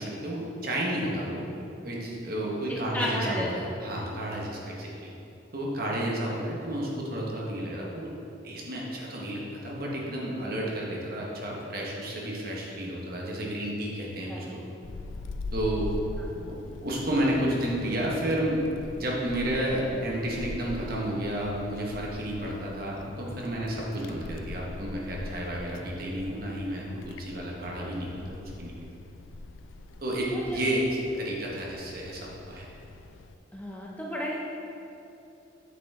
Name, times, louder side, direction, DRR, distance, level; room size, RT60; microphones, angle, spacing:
voice 1, 0.0-1.4 1.8-5.1 5.5-8.1 8.4-14.6 15.5-15.9 16.5-16.6 16.8-28.7 30.0-32.2 32.5-32.6, right 1 dB, 50° right, -3 dB, 1.2 m, -31 dB
voice 2, 2.7-3.7 14.3-14.5 16.2-16.5 30.3-30.6 33.5-34.4, equal, 10° left, -4 dB, 0.7 m, -33 dB
Wind, 14.8-33.3, left 2 dB, 85° left, 0.4 m, -42 dB
8.2 x 5.0 x 3.6 m, 2.9 s
head